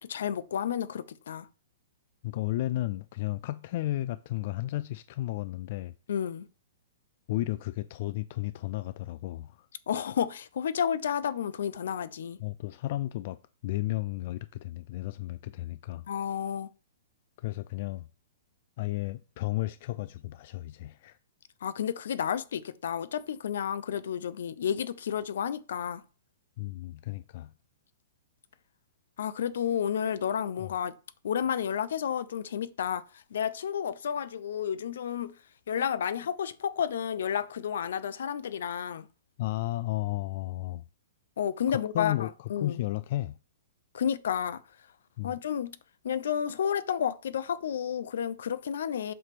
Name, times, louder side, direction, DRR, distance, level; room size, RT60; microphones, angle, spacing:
voice 1, 0.0-1.5 6.1-6.5 9.9-12.4 16.1-16.7 21.6-26.0 29.2-30.9 31.2-35.3 35.7-39.1 41.4-42.8 43.9-44.6 45.2-45.8 46.0-49.1, left 8 dB, 70° left, 0.7 m, -31 dB
voice 2, 2.2-5.9 7.3-9.7 12.4-16.0 17.4-18.1 18.8-21.2 26.6-27.5 30.6-30.7 39.4-40.9 41.7-43.4 45.2-45.4, left 16 dB, 45° left, 0.3 m, -33 dB
7.7 x 3.3 x 6.0 m
hypercardioid pair, 155°, 0 cm